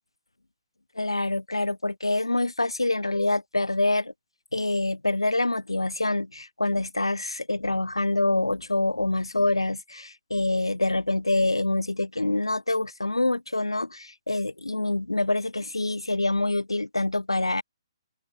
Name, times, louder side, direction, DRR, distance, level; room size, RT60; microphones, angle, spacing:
voice 1, 1.0-4.1 4.5-17.6, left 2 dB, 85° left, 0.5 m, -26 dB
open air
figure-of-eight pair, 130°, 3 cm